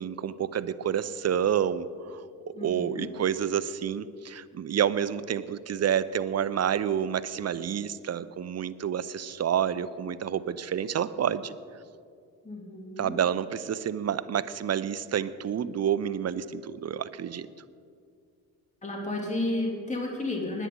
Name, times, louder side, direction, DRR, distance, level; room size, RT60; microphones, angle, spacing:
voice 1, 0.0-11.5 13.0-17.5, right 9 dB, 35° right, 16 dB, 0.7 m, -29 dB
voice 2, 2.5-3.1 12.4-13.2 18.8-20.7, left 2 dB, 15° left, -1 dB, 2.9 m, -32 dB
20.0 x 9.4 x 3.9 m, 2.2 s
hypercardioid pair, 45°, 43 cm